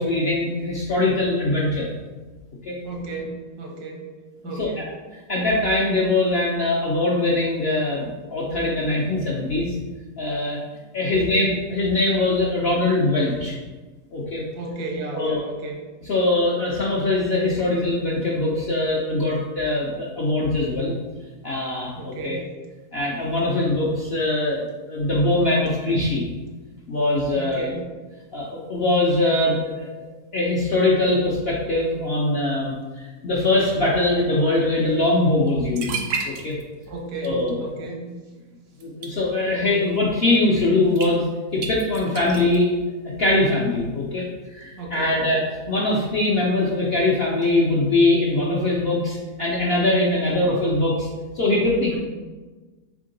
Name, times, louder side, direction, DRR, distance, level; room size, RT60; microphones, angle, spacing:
voice 1, 0.0-1.9 2.6-2.7 4.4-4.8 5.3-9.8 10.2-10.6 10.9-13.5 14.1-14.4 15.1-15.5 16.1-20.9 21.4-22.4 22.9-26.2 26.9-27.7 28.3-30.0 30.3-35.9 36.2-36.6 37.2-37.6 38.8-41.2 41.5-42.7 43.2-45.4 45.7-51.1 51.3-52.0, left 2 dB, 60° left, -4 dB, 0.6 m, -22 dB
voice 2, 2.8-4.1 4.4-4.8 11.1-11.3 14.5-15.8 22.0-22.5 27.3-27.8 36.9-38.1 44.8-45.2 51.9-52.0, right 3 dB, 80° right, 0 dB, 1.4 m, -33 dB
sound 1, 35.5-35.6 35.7-36.8 37.1-37.5 38.8-39.1 40.9-41.1 41.6-42.6, right 5 dB, 65° right, 0.8 m, -31 dB
3.7 x 3.6 x 3.8 m, 1.3 s
omnidirectional pair, 1.7 m